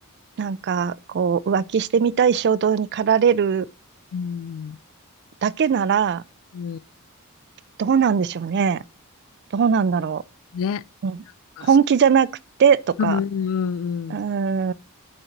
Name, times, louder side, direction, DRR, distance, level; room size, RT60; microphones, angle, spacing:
voice 1, 0.4-3.7 5.4-6.2 7.8-8.8 9.5-10.2 11.0-11.2 11.6-12.3 12.6-13.2 14.1-14.7, right 7 dB, 50° right, 0.4 m, -20 dB
voice 2, 4.1-4.8 6.5-6.8 10.5-10.8 11.6-11.7 13.0-14.2, left 6 dB, 65° left, 0.3 m, -27 dB
8.8 x 4.1 x 5.8 m
head